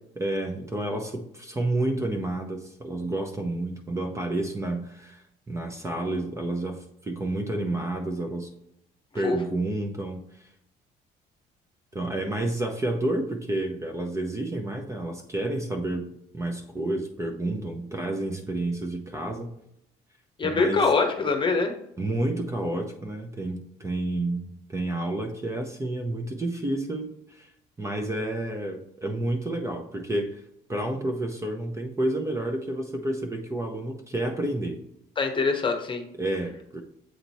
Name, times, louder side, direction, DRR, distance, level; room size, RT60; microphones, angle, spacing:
voice 1, 0.2-8.5 9.1-10.5 11.9-19.5 20.4-20.8 22.0-27.5 27.8-30.4 30.7-34.8 36.2-36.8, right 1 dB, 15° right, 4 dB, 0.7 m, -30 dB
voice 2, 20.4-21.7 35.2-36.0, left 4 dB, 30° left, 5 dB, 1.0 m, -23 dB
8.0 x 2.9 x 4.1 m, 0.77 s
cardioid pair, 110°, 17 cm